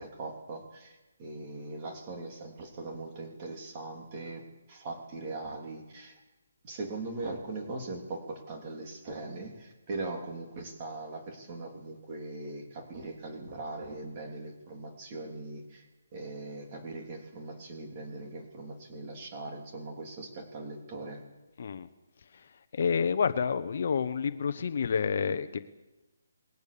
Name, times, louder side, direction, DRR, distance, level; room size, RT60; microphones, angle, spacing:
voice 1, 0.0-6.2 6.6-15.9 16.1-21.2, right 2 dB, 20° right, 2 dB, 3.3 m, -40 dB
voice 2, 21.6-21.9 22.3-25.6, left 6 dB, 40° left, 10 dB, 1.1 m, -29 dB
28.0 x 21.0 x 7.0 m, 1.1 s
hypercardioid pair, 175°, 0 cm